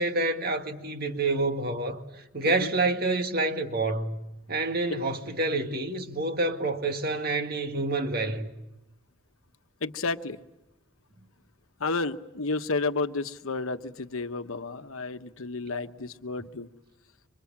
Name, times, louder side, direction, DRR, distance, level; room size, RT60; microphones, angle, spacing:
voice 1, 0.0-2.0 2.3-4.2 4.5-8.5 15.7-15.8, right 2 dB, 45° right, 1.9 m, -28 dB
voice 2, 2.4-2.7 9.8-10.4 11.8-16.7, left 3 dB, 80° left, 1.1 m, -31 dB
28.0 x 25.5 x 7.5 m
head